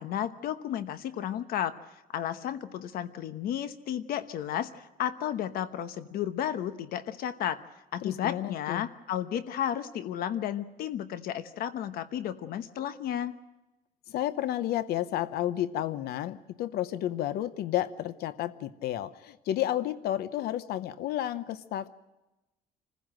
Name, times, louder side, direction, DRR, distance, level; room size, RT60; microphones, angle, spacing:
voice 1, 0.0-1.7 2.1-7.6 7.9-13.3, left 10 dB, 70° left, 11 dB, 1.0 m, -33 dB
voice 2, 8.0-8.9 14.1-21.9, left 12 dB, 85° left, 14 dB, 0.8 m, -31 dB
27.0 x 15.5 x 7.6 m, 1.0 s
cardioid pair, 155°, 16 cm